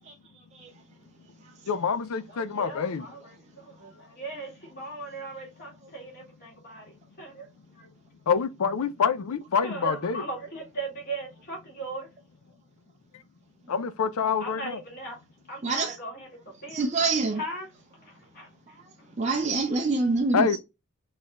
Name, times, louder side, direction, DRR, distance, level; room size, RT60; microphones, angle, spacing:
voice 1, 1.7-3.0 8.3-10.2 13.7-14.8 20.3-20.6, left 6 dB, 70° left, 0.5 m, -26 dB
voice 2, 2.3-7.5 7.8-7.9 9.6-12.1 14.4-15.2 15.5-17.0 17.4-17.7 18.0-19.3, right 2 dB, 40° left, 1.9 m, -39 dB
voice 3, 15.6-16.0 16.7-17.4 18.7-18.8 19.2-20.6, right 3 dB, 30° right, 0.4 m, -26 dB
4.0 x 2.6 x 2.9 m
head